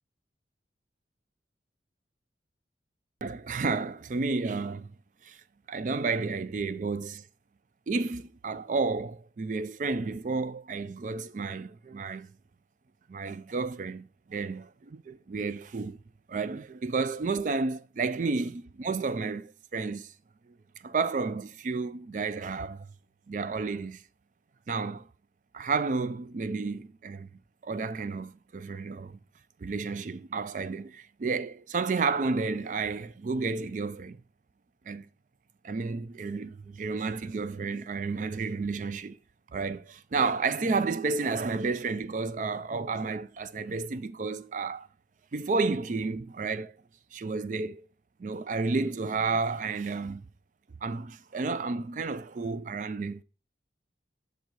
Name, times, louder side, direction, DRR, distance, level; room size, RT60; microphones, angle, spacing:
voice 1, 3.2-4.9 5.2-5.4 5.7-7.2 7.9-12.3 13.1-16.0 16.3-20.1 20.8-22.9 23.3-24.0 24.7-25.1 25.5-27.3 27.6-29.2 29.6-34.2 34.9-35.1 35.6-39.2 39.5-44.9 45.3-46.8 47.1-47.9 48.2-50.2 50.8-53.2, right 4 dB, 45° right, 0.4 m, -31 dB
6.5 x 3.9 x 4.6 m
head